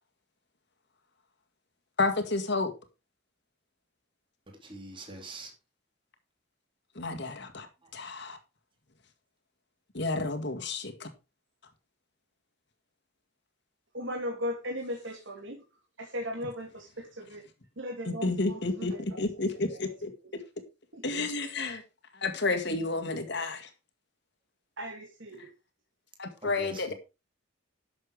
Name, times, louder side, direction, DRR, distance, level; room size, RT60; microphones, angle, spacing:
voice 1, 2.0-2.7 6.9-7.7 7.9-8.4 9.9-11.1 18.1-20.1 21.0-21.8 22.1-23.7 25.4-25.5 26.2-26.9, left 3 dB, 55° left, 2.0 m, -31 dB
voice 2, 4.5-5.5 7.8-7.9 26.4-26.9, right 2 dB, 25° right, 3.1 m, -44 dB
voice 3, 13.9-15.6 16.0-17.4 17.8-19.2 20.9-21.2 24.8-25.5, equal, 65° right, 2.2 m, -37 dB
11.5 x 7.1 x 4.8 m
head